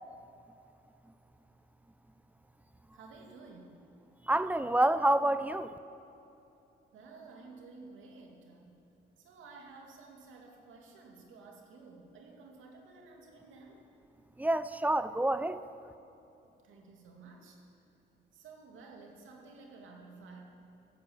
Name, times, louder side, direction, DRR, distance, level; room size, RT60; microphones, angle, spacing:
voice 1, 2.9-3.8 6.9-8.8 9.2-13.8 16.6-17.6 18.3-20.4, right 3 dB, 80° right, 2.6 m, -53 dB
voice 2, 4.3-5.7 14.4-15.6, right 1 dB, 10° right, 0.6 m, -28 dB
15.5 x 9.1 x 7.4 m
cardioid pair, 90°, 20 cm